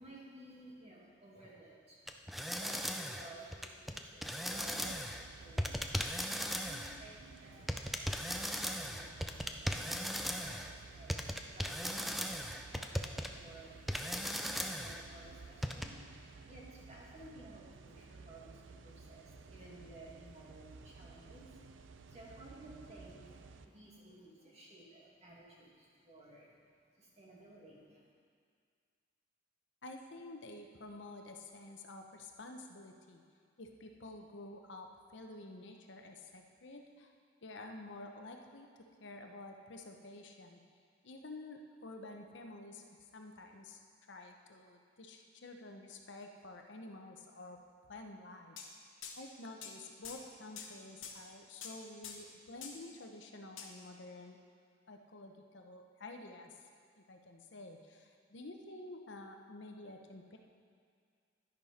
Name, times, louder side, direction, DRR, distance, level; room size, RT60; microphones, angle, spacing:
voice 1, 0.0-26.6 26.9-28.1, right 1 dB, 35° right, -5 dB, 2.2 m, -56 dB
sound 1, 2.1-5.2 5.6-7.0 7.7-10.7 11.1-13.3 13.9-15.0 15.6-15.9, equal, ahead, 0.4 m, -37 dB
sound 2, 4.5-23.7, right 4 dB, 75° right, 0.5 m, -55 dB
voice 2, 29.8-33.2 33.6-37.1 37.4-40.6 41.0-42.8 43.1-43.8 44.1-47.6 47.9-48.6 49.2-54.4 54.9-56.7 57.0-60.4, left 2 dB, 65° left, 3 dB, 0.9 m, -50 dB
sound 3, 48.6-48.7 49.0-49.2 49.6-49.7 50.0-50.2 50.6-50.7 51.0-51.2 51.6-51.8 52.0-52.2 52.6-52.8 53.6-53.7, left 7 dB, 90° left, 1.2 m, -46 dB
11.0 x 10.5 x 4.3 m, 2.1 s
head